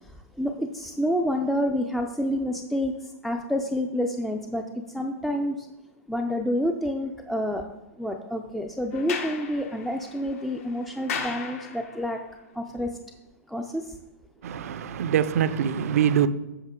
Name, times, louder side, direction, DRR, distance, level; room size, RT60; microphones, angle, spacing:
voice 1, 0.0-5.7 6.1-7.7 8.0-12.2 12.5-13.0 13.5-14.0, equal, ahead, 0.4 m, -28 dB
Sliding door, 8.9-12.2, left 6 dB, 65° left, 1.3 m, -36 dB
voice 2, 14.4-16.3, right 9 dB, 70° right, 0.5 m, -24 dB
7.9 x 5.7 x 3.6 m
hypercardioid pair, 135°, 8 cm